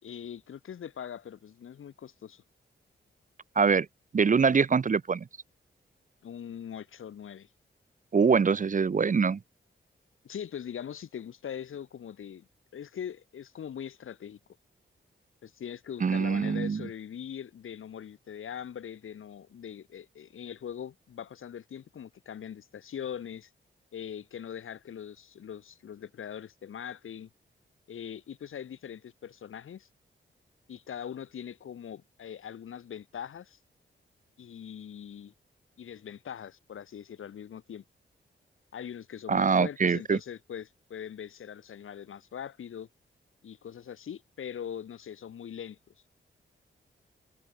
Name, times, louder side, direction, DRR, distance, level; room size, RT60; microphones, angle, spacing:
voice 1, 0.0-2.4 6.2-7.5 10.2-14.4 15.4-23.5 23.9-27.3 27.9-29.9 30.7-33.6 34.4-35.3 35.8-37.8 38.7-42.9 43.4-45.8, left 8 dB, 85° left, 4.3 m, -41 dB
voice 2, 4.1-5.2 8.1-9.4 16.0-16.8 39.3-40.2, right 5 dB, 40° right, 0.7 m, -24 dB
cardioid pair, 70°, 20 cm